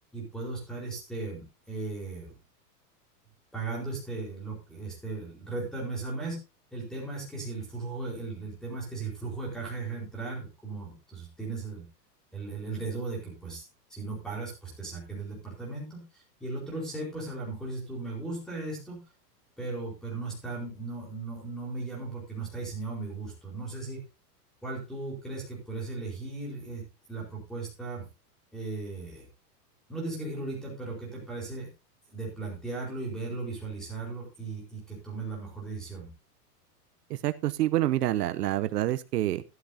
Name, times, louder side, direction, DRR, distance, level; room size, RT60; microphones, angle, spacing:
voice 1, 0.1-2.4 3.5-6.4 6.7-11.8 12.3-13.6 13.9-19.0 19.6-24.0 24.6-26.8 27.1-28.1 28.5-29.3 29.9-31.7 32.1-36.1, right 3 dB, ahead, -2 dB, 4.5 m, -37 dB
voice 2, 37.1-39.4, right 14 dB, 80° right, 13 dB, 1.0 m, -27 dB
13.0 x 11.5 x 2.8 m, 0.27 s
supercardioid pair, 180°, 48 cm